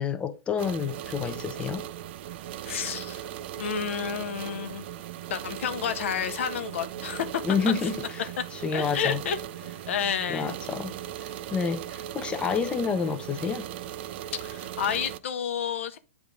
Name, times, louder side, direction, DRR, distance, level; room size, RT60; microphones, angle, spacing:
voice 1, 0.0-1.8 7.4-9.2 10.3-10.9 11.2-13.7, left 6 dB, 15° left, 0.6 m, -29 dB
sound 1, 0.6-15.2, right 11 dB, 50° right, 0.4 m, -38 dB
voice 2, 2.7-3.3 3.6-4.8 5.3-7.9 8.4-8.5 8.7-10.5 14.4-16.0, left 8 dB, 65° left, 0.9 m, -30 dB
8.0 x 3.6 x 3.6 m
hypercardioid pair, 130°, 7 cm